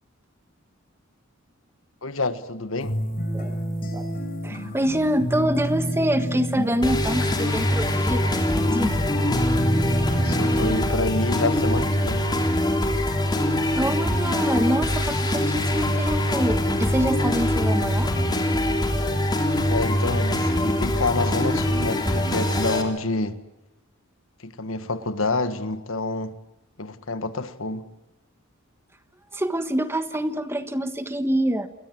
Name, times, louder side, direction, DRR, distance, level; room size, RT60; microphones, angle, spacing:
voice 1, 2.0-3.0 10.1-12.3 19.7-23.4 24.4-26.4 26.8-27.9, left 2 dB, 70° left, 1.6 m, -28 dB
sound 1, 2.8-10.9, equal, 40° left, 5.8 m, -29 dB
voice 2, 4.4-8.9 13.8-18.1 29.3-31.7, right 1 dB, 10° right, 1.5 m, -26 dB
sound 2, 6.8-22.8, left 1 dB, 20° left, 3.4 m, -23 dB
28.5 x 23.0 x 7.7 m
head